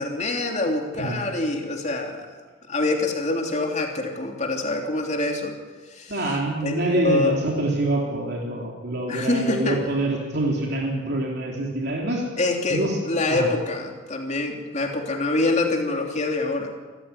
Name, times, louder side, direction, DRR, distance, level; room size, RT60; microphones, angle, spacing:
voice 1, 0.0-2.3 2.7-5.6 5.9-6.2 6.6-7.3 9.1-9.8 12.4-16.7, left 2 dB, 35° left, 3 dB, 3.1 m, -25 dB
voice 2, 0.9-1.3 6.1-12.2 12.7-13.0 13.3-13.5, right 2 dB, 55° right, -1 dB, 3.6 m, -25 dB
27.0 x 14.5 x 9.6 m, 1.3 s
head